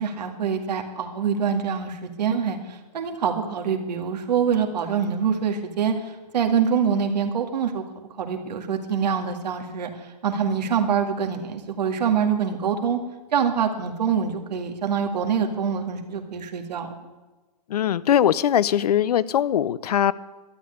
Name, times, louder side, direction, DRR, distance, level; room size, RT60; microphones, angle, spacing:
voice 1, 0.0-5.9 6.3-7.8 8.2-9.9 10.2-13.0 13.3-16.9, right 7 dB, 80° right, 4 dB, 2.1 m, -25 dB
voice 2, 17.7-20.1, left 10 dB, 65° left, 19 dB, 0.7 m, -21 dB
12.5 x 8.6 x 9.5 m, 1.2 s
hypercardioid pair, 175°, 21 cm